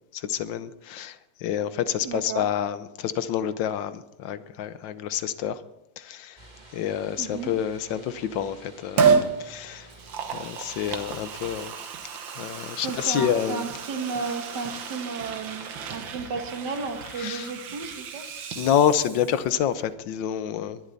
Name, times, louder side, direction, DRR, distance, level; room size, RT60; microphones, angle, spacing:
voice 1, 0.1-1.1 1.4-5.6 6.0-6.4 6.7-9.1 9.4-9.9 10.3-11.7 12.4-13.7 17.2-17.5 18.6-20.8, left 9 dB, 80° left, 1.5 m, -28 dB
voice 2, 2.0-2.5 7.2-7.5 12.8-18.2, right 4 dB, 65° right, 2.0 m, -33 dB
sound 1, 6.4-11.6, right 2 dB, 25° right, 2.3 m, -50 dB
Liquid, 9.0-9.3 9.9-19.5 19.9-20.0, right 6 dB, 90° right, 2.0 m, -30 dB
21.5 x 11.5 x 4.1 m
omnidirectional pair, 2.0 m